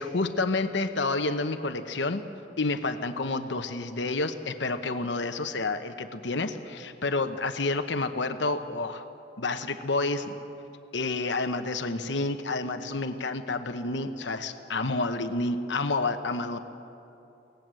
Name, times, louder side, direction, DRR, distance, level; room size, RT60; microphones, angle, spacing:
voice 1, 0.0-2.2 2.6-9.0 9.4-10.4 10.9-16.6, left 3 dB, 75° left, 8 dB, 1.0 m, -29 dB
24.5 x 18.5 x 7.7 m, 2.8 s
head